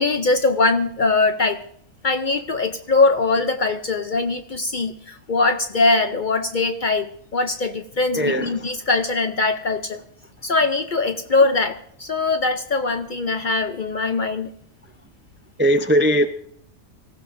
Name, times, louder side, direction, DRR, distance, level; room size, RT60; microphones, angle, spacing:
voice 1, 0.0-1.6 2.0-10.0 10.4-14.5, left 3 dB, 50° left, 0.6 m, -21 dB
voice 2, 8.1-8.5 15.6-16.3, equal, 15° right, 0.4 m, -18 dB
24.5 x 15.0 x 2.6 m
omnidirectional pair, 1.4 m